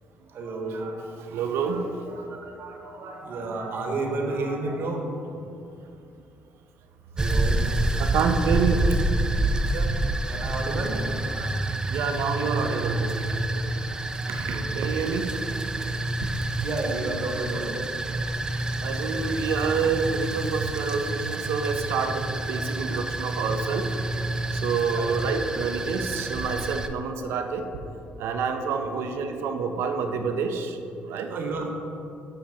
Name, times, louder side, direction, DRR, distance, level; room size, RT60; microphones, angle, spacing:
voice 1, 0.3-1.1 1.6-5.0 7.2-7.6 9.7-9.8 10.3-11.6 12.2-13.0 14.1-15.1 16.6-17.8 22.3-22.4 24.9-25.2 28.8-28.9 31.3-31.7, right 3 dB, 60° right, 1 dB, 1.0 m, -33 dB
voice 2, 1.3-1.9 3.0-3.1 8.0-8.9 11.9-13.7 14.3-15.3 16.2-16.3 18.8-23.8 24.5-27.6 28.2-30.8 31.0-31.3, right 5 dB, 75° right, 6 dB, 0.5 m, -28 dB
sound 1, 7.2-26.9, right 2 dB, 15° right, 0.4 m, -28 dB
7.9 x 2.9 x 4.9 m, 2.7 s
supercardioid pair, 80°, 4 cm